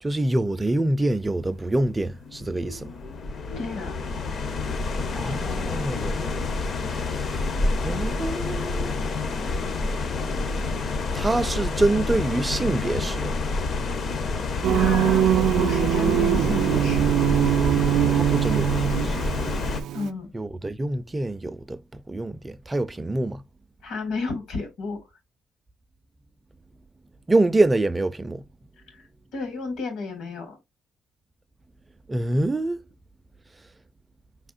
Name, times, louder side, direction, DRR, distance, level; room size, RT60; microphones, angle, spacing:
voice 1, 0.0-2.9 5.2-6.3 7.8-8.9 11.1-13.3 18.1-19.2 20.3-21.8 22.1-23.4 27.3-28.4 32.1-32.8, right 2 dB, 15° right, 0.4 m, -25 dB
sound 1, 1.2-19.8, left 3 dB, 45° left, 0.6 m, -28 dB
voice 2, 3.6-3.9 14.7-17.2 19.9-20.3 23.8-25.1 28.9-29.1 29.3-30.6, left 3 dB, 75° left, 2.1 m, -32 dB
Singing, 14.6-20.1, right 11 dB, 85° right, 0.4 m, -22 dB
4.8 x 3.5 x 2.4 m
cardioid pair, 150°, 0 cm